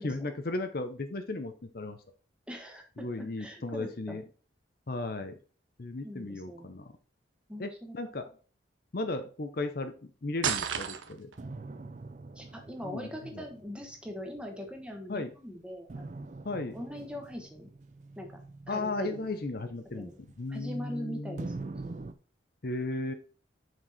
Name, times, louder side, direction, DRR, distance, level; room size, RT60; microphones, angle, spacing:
voice 1, 0.0-2.0 3.0-4.2 4.9-5.4 5.8-6.9 7.6-8.2 8.9-11.3 12.8-13.5 15.1-15.3 16.4-16.8 18.7-20.1 20.4-21.5 22.6-23.1, left 2 dB, 50° left, 8 dB, 0.7 m, -35 dB
voice 2, 2.5-4.2 6.0-6.7 7.5-8.0 12.3-16.2 16.7-17.7 18.2-18.3 18.7-19.2 19.9-20.1 20.5-22.0, equal, 5° right, 2 dB, 1.2 m, -42 dB
sound 1, 10.4-11.4, right 7 dB, 90° right, 0.7 m, -31 dB
sound 2, 11.4-15.0 15.9-20.9 21.4-22.1, right 3 dB, 40° right, 0.5 m, -45 dB
6.2 x 4.6 x 4.1 m, 0.38 s
head